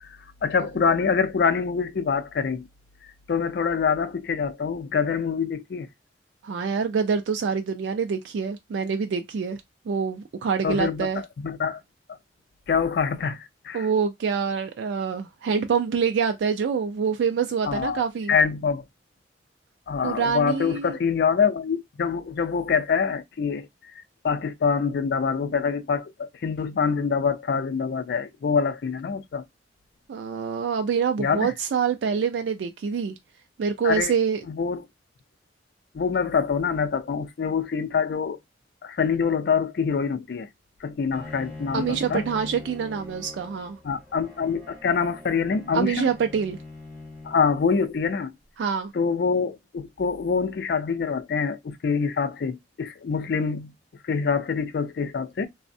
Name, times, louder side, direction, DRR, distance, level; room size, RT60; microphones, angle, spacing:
voice 1, 0.0-2.7 3.3-5.9 10.6-11.8 12.7-13.9 17.6-18.8 19.9-23.7 24.2-29.4 31.2-31.5 33.8-34.1 34.5-34.8 35.9-38.4 38.8-40.5 40.8-42.2 43.8-46.1 47.2-48.3 48.9-53.7 54.0-55.5, left 5 dB, 60° left, 0.4 m, -25 dB
voice 2, 6.4-9.6 9.9-11.2 13.7-18.3 20.0-21.0 30.1-33.2 33.6-34.4 41.7-43.8 45.7-46.6 48.6-48.9, right 6 dB, 90° right, 0.3 m, -26 dB
Bowed string instrument, 41.1-48.2, left 2 dB, 30° right, 2.2 m, -42 dB
3.3 x 2.0 x 2.5 m
head